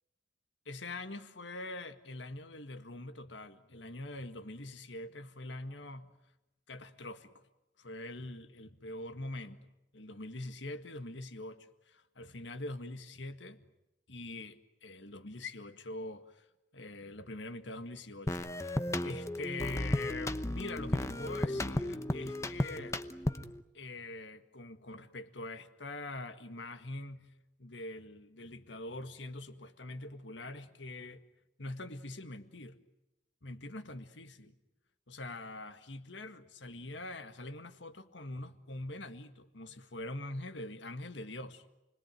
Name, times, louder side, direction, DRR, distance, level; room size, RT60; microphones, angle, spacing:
voice 1, 0.6-6.1 6.7-7.4 7.8-9.6 9.9-13.6 14.1-16.4 16.7-23.0 23.7-27.3 27.6-31.2 31.6-32.8 33.4-34.5 35.1-41.6, left 2 dB, 75° left, 1.9 m, -44 dB
sound 1, 18.3-23.6, left 1 dB, 15° left, 0.9 m, -34 dB
29.5 x 21.0 x 9.2 m
head